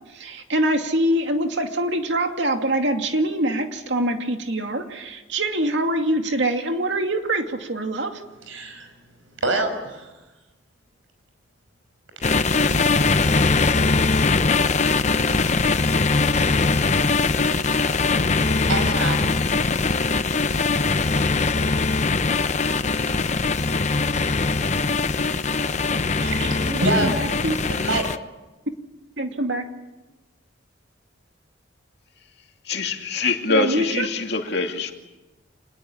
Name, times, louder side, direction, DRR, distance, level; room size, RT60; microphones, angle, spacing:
voice 1, 0.1-8.2 26.4-27.6 29.2-29.7 33.5-34.1, right 1 dB, 65° right, 2.5 m, -24 dB
voice 2, 8.5-8.9 9.4-10.0 18.7-19.3 26.2-27.1 27.8-28.0, right 2 dB, 90° right, 5.7 m, -25 dB
sound 1, 12.2-28.2, left 3 dB, 35° left, 0.8 m, -21 dB
voice 3, 32.6-34.9, left 3 dB, 55° left, 2.6 m, -24 dB
27.0 x 20.5 x 8.7 m
head